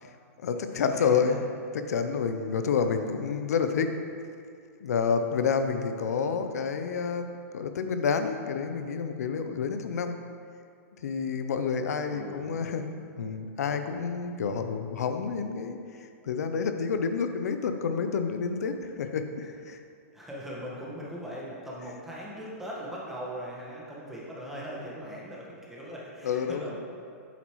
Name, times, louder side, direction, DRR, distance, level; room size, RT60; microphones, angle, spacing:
voice 1, 0.4-1.4 1.9-3.9 4.8-7.3 7.5-10.1 11.0-12.8 13.2-19.8 26.2-26.8, left 6 dB, 85° left, 7 dB, 0.6 m, -29 dB
voice 2, 0.9-1.4 2.6-2.8 12.1-13.0 20.1-26.8, equal, 5° right, -6 dB, 1.4 m, -40 dB
8.2 x 8.2 x 3.1 m, 2.3 s
hypercardioid pair, 155°, 8 cm